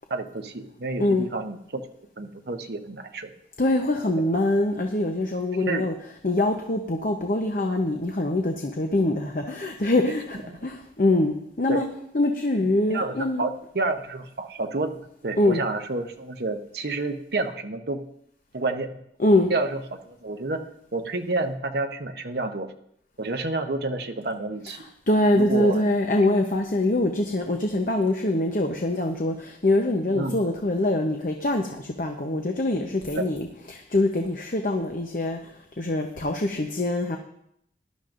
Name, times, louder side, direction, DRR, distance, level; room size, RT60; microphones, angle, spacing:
voice 1, 0.1-1.8 2.2-3.3 5.7-5.9 11.7-11.8 12.9-18.0 18.5-19.0 19.5-19.8 20.1-20.6 20.9-22.7 23.2-24.8 25.4-25.8 30.1-30.4 33.1-33.2, right 2 dB, 60° right, 5 dB, 0.8 m, -29 dB
voice 2, 3.6-5.9 6.2-11.8 12.1-13.4 15.4-15.6 19.2-19.5 25.1-37.2, left 1 dB, 45° left, 3 dB, 0.8 m, -24 dB
17.5 x 11.5 x 2.6 m, 0.74 s
head